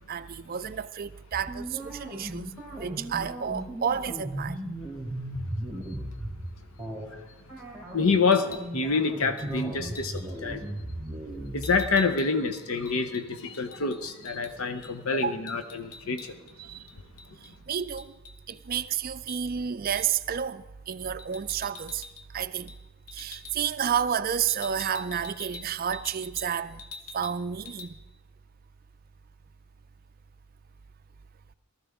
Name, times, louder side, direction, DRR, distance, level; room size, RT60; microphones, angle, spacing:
voice 1, 0.1-2.5 2.8-4.6 9.8-9.9 10.7-11.3 14.4-14.5 15.1-15.3 16.6-16.9 17.4-18.1 18.5-22.0 22.3-22.7 23.1-26.8 27.1-27.9, right 8 dB, 40° right, 0.4 m, -31 dB
sound 1, 1.3-6.4 6.8-7.1 7.5-11.9, right 1 dB, 5° right, 2.5 m, -36 dB
voice 2, 7.9-10.6 11.5-16.4, left 4 dB, 70° left, 0.8 m, -27 dB
sound 2, 8.3-8.7 9.4-9.5 9.9-10.2 11.6-14.5 14.8-14.9 15.2-16.5 16.9-18.9 19.3-19.4 20.0-20.2 21.2-22.3 22.5-22.8 23.1-23.6 24.5-26.5 26.8-27.4 27.7-27.9, left 4 dB, 90° left, 1.2 m, -46 dB
19.0 x 13.5 x 3.6 m
head